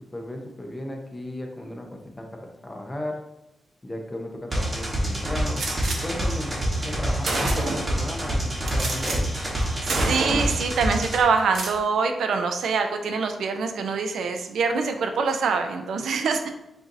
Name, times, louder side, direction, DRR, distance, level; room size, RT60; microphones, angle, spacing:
voice 1, 0.1-2.3 2.6-3.2 3.8-9.3, left 1 dB, 15° left, 2 dB, 0.6 m, -35 dB
sound 1, 4.5-11.2, right 1 dB, 25° right, 1.1 m, -27 dB
Gunshot gunfire, 5.6-6.0 6.8-6.9 7.2-7.9 8.7-9.2 9.5-9.6 9.9-10.6 11.4-11.8, right 2 dB, 65° right, 0.9 m, -28 dB
voice 2, 9.8-16.5, right 5 dB, 90° right, 6 dB, 0.5 m, -24 dB
7.7 x 2.6 x 2.6 m, 0.93 s
wide cardioid pair, 160°, 0 cm